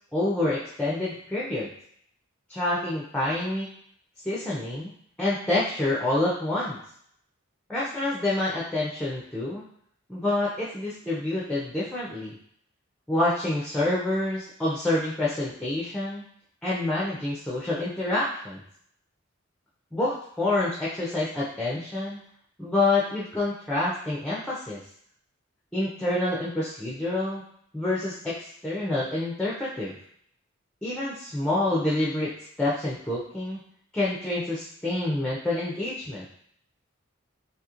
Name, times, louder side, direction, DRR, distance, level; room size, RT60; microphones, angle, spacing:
voice 1, 0.1-1.7 2.5-3.7 4.2-4.9 5.2-6.8 7.7-9.6 10.1-12.4 13.1-16.2 16.6-18.6 19.9-22.2 22.6-24.8 25.7-27.4 27.7-30.0 30.8-32.3 32.6-33.6 33.9-36.3, left 2 dB, 5° left, -6 dB, 0.5 m, -27 dB
2.9 x 2.9 x 2.4 m, 0.65 s
head